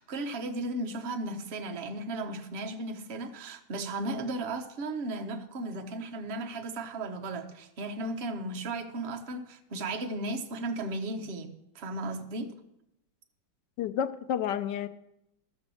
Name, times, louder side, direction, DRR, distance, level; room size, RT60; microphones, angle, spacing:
voice 1, 0.0-12.5, right 2 dB, 45° right, 0.9 m, -35 dB
voice 2, 13.8-14.9, left 9 dB, 70° left, 1.1 m, -30 dB
13.0 x 6.0 x 7.0 m
omnidirectional pair, 2.3 m